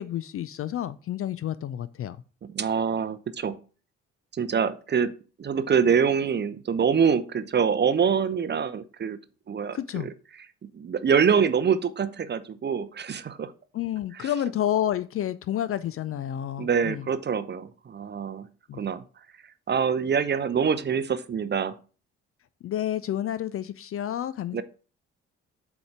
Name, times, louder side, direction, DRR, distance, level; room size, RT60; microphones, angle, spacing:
voice 1, 0.0-2.2 9.7-10.1 13.7-17.1 18.7-18.8 22.6-24.6, left 11 dB, 40° left, 15 dB, 0.4 m, -30 dB
voice 2, 2.4-3.6 4.3-5.1 5.4-9.2 9.5-10.1 10.7-13.5 14.2-14.3 16.6-18.5 18.7-19.0 19.7-21.7 24.5-24.6, right 6 dB, 30° right, 13 dB, 0.6 m, -25 dB
7.8 x 3.0 x 4.9 m, 0.37 s
figure-of-eight pair, 40°, 37 cm